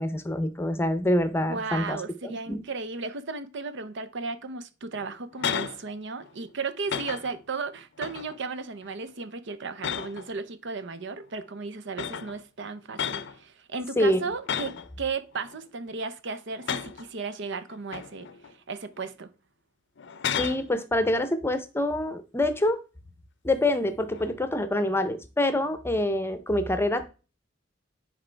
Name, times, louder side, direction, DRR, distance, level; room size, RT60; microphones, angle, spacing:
voice 1, 0.0-2.6 14.0-14.3 20.4-22.8 23.4-27.1, left 1 dB, 10° left, 0.7 m, -26 dB
voice 2, 1.5-18.3 18.7-19.3, right 4 dB, 65° right, 0.7 m, -35 dB
sound 1, 4.9-5.8 6.2-6.5 6.9-7.4 8.0-8.4 8.8-9.2 9.8-10.4 11.3-11.4 11.9-12.4 12.9-13.4 14.4-14.9 15.3-15.9 16.5-17.1 17.7-18.5 18.9-19.1 20.0-20.7 24.1-24.5, left 7 dB, 65° left, 0.6 m, -33 dB
10.0 x 4.3 x 3.4 m
head